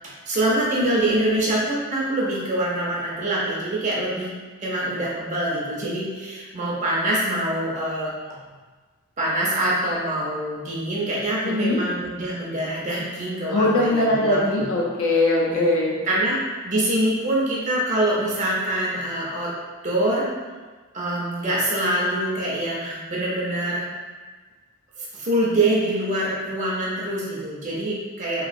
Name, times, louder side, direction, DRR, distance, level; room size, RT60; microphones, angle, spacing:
voice 1, 0.3-4.3 4.6-8.1 9.2-14.7 15.5-15.6 16.1-19.6 19.8-20.3 20.9-23.8 25.0-28.5, right 1 dB, 35° right, -5 dB, 0.5 m, -24 dB
voice 2, 11.4-11.8 13.5-16.0, left 2 dB, 70° left, -3 dB, 0.5 m, -21 dB
2.9 x 2.8 x 2.5 m, 1.4 s
head